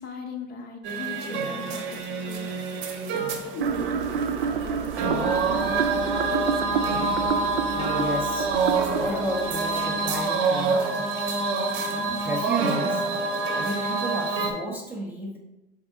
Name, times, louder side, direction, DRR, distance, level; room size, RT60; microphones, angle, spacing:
voice 1, 0.0-6.8, left 4 dB, 30° left, 4 dB, 0.7 m, -40 dB
sound 1, 0.8-14.5, right 3 dB, 40° right, 0.8 m, -27 dB
sound 2, 3.6-10.6, right 7 dB, 75° right, 0.5 m, -30 dB
voice 2, 7.7-8.6 8.9-11.1 11.9-13.0 13.5-15.4, right 1 dB, 5° right, -3 dB, 0.5 m, -32 dB
4.3 x 3.5 x 3.4 m, 0.99 s
hypercardioid pair, 95°, 30 cm